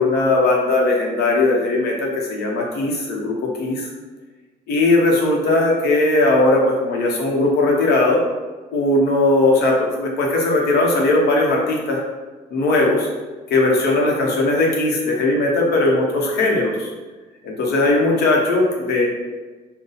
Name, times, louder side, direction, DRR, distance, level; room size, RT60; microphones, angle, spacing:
voice 1, 0.0-3.9 4.7-8.2 8.7-12.0 12.5-13.1 13.5-16.9 17.4-19.1, left 2 dB, 75° left, -1 dB, 0.9 m, -18 dB
4.0 x 2.3 x 4.0 m, 1.3 s
cardioid pair, 110°, 17 cm